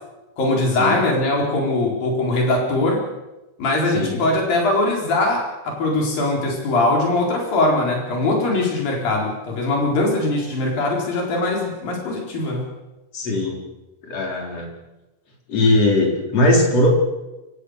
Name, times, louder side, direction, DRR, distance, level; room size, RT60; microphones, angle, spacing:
voice 1, 0.4-3.0 3.6-12.7, left 2 dB, 85° left, 0 dB, 6.1 m, -21 dB
voice 2, 13.1-13.6 14.1-14.7 15.5-16.9, left 1 dB, 45° left, 0 dB, 5.2 m, -19 dB
27.5 x 16.5 x 6.6 m, 1.0 s
omnidirectional pair, 4.0 m